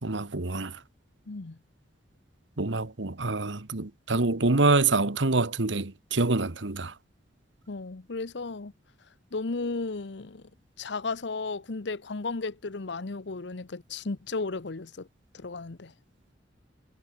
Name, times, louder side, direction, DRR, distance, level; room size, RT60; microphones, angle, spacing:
voice 1, 0.0-0.8 2.6-6.9, right 3 dB, 85° right, 1.5 m, -26 dB
voice 2, 1.3-1.6 7.7-8.7 9.3-10.4 10.8-15.1 15.3-15.9, left 3 dB, 70° left, 0.9 m, -34 dB
head